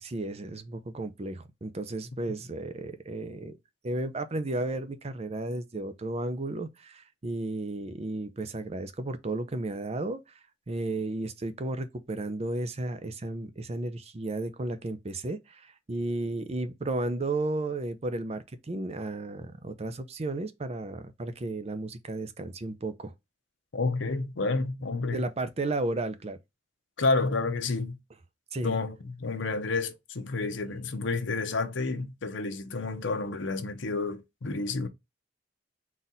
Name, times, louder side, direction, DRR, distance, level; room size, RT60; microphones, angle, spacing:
voice 1, 0.0-3.6 3.8-10.2 10.7-23.1 25.1-26.4 28.5-28.8, right 2 dB, 35° right, 0.5 m, -33 dB
voice 2, 23.7-25.3 27.0-28.0 28.6-34.9, left 3 dB, 80° left, 0.7 m, -30 dB
4.1 x 2.4 x 3.9 m
head